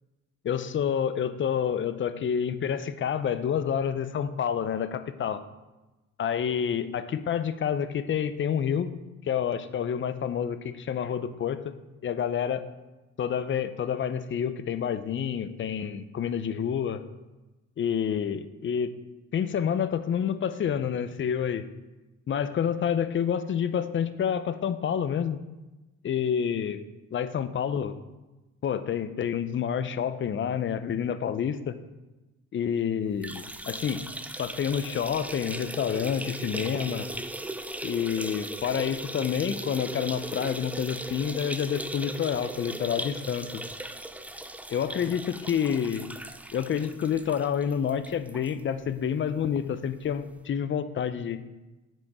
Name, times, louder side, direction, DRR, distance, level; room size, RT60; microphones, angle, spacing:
voice 1, 0.4-5.4 6.2-8.9 9.2-11.7 12.0-12.6 13.2-17.0 17.8-18.9 19.3-21.7 22.3-25.4 26.0-26.8 27.1-27.9 28.6-31.8 32.5-34.0 34.4-37.1 37.8-43.5 44.7-46.1 46.5-51.4, left 8 dB, 40° left, 13 dB, 0.5 m, -28 dB
sound 1, 33.1-48.5 48.9-49.0 49.3-49.4 50.4-50.5, right 1 dB, 5° right, 0.5 m, -38 dB
7.5 x 5.1 x 4.7 m, 1.1 s
cardioid pair, 90°, 30 cm